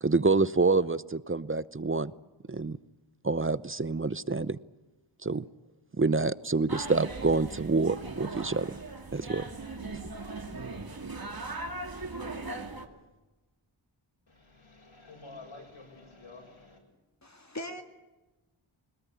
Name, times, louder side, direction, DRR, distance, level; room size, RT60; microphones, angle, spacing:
voice 1, 0.0-2.1 2.5-2.8 3.2-4.6 5.2-5.4 6.0-8.7 9.1-9.4 9.9-10.0, right 3 dB, 25° right, 0.8 m, -27 dB
sound 1, 6.7-12.9, right 3 dB, 45° right, 2.5 m, -39 dB
voice 2, 14.3-16.8, left 3 dB, 70° left, 7.5 m, -50 dB
voice 3, 17.2-17.8, left 1 dB, 35° left, 2.0 m, -40 dB
21.5 x 20.0 x 8.4 m
cardioid pair, 50°, 49 cm